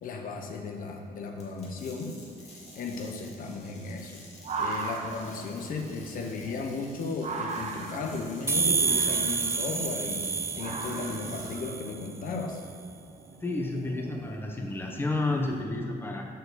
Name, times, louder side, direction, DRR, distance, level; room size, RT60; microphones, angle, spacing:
voice 1, 0.0-4.2 4.6-12.7, left 3 dB, 60° left, 3 dB, 1.0 m, -35 dB
sound 1, 1.4-11.7, left 2 dB, 45° left, 1.8 m, -51 dB
sound 2, 2.2-15.6, right 4 dB, 45° right, 0.9 m, -40 dB
sound 3, 8.5-12.1, right 4 dB, 15° right, 0.4 m, -29 dB
voice 2, 13.4-16.3, left 2 dB, 15° left, 1 dB, 0.8 m, -31 dB
6.5 x 4.7 x 6.7 m, 2.3 s
cardioid pair, 125°, 16 cm